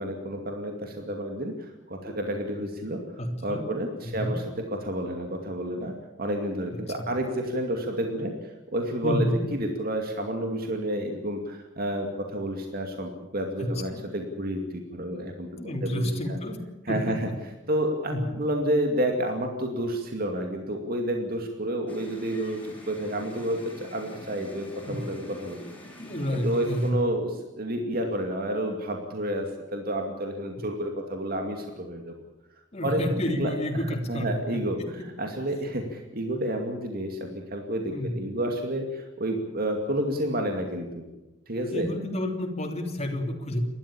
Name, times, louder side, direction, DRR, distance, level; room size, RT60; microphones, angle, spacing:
voice 1, 0.0-3.0 3.4-4.4 4.7-5.9 6.2-15.5 15.8-16.4 16.9-17.2 17.7-25.6 26.3-32.1 32.8-33.5 34.1-34.8 35.2-41.0 41.5-41.9, right 1 dB, 50° right, 3 dB, 2.4 m, -30 dB
voice 2, 3.2-3.7 4.0-4.4 6.7-7.1 9.0-9.4 13.6-14.0 15.6-16.6 16.9-17.3 18.1-18.2 24.8-25.1 25.3-25.4 26.0-27.0 32.7-34.9 37.9-38.2 41.7-43.6, equal, 35° left, 3 dB, 3.3 m, -30 dB
sound 1, 21.9-26.9, left 1 dB, 10° left, 5.5 m, -46 dB
29.0 x 13.0 x 8.7 m, 1.0 s
head